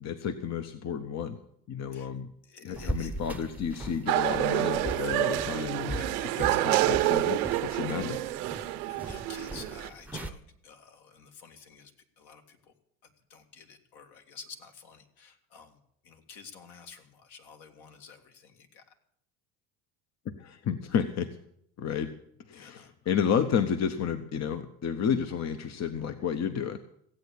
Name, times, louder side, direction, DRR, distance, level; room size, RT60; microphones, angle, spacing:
voice 1, 0.0-1.4 1.7-2.3 2.6-6.0 6.4-8.2 20.4-21.3 21.8-22.1 22.5-26.8, left 7 dB, 40° left, 9 dB, 1.0 m, -31 dB
voice 2, 2.4-3.1 5.9-7.2 7.7-7.9 8.5-11.9 12.2-12.7 13.3-18.8 22.5-22.9, left 6 dB, 60° left, 5 dB, 2.4 m, -50 dB
sound 1, 2.7-10.3, right 1 dB, 5° right, 0.9 m, -39 dB
sound 2, 4.1-9.9, right 15 dB, 85° right, 1.1 m, -28 dB
15.5 x 8.4 x 8.3 m, 0.70 s
supercardioid pair, 95°, 43 cm